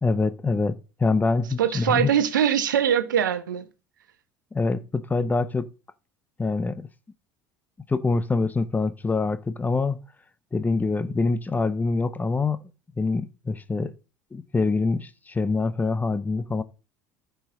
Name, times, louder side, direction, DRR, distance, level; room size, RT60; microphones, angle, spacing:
voice 1, 0.0-2.1 4.5-5.7 6.4-6.9 7.9-10.0 10.5-12.6 13.0-13.9 14.3-16.6, left 3 dB, 15° left, 0.8 m, -25 dB
voice 2, 1.6-3.7, right 9 dB, 75° right, 1.0 m, -22 dB
14.5 x 5.7 x 3.7 m
figure-of-eight pair, 65°, 11 cm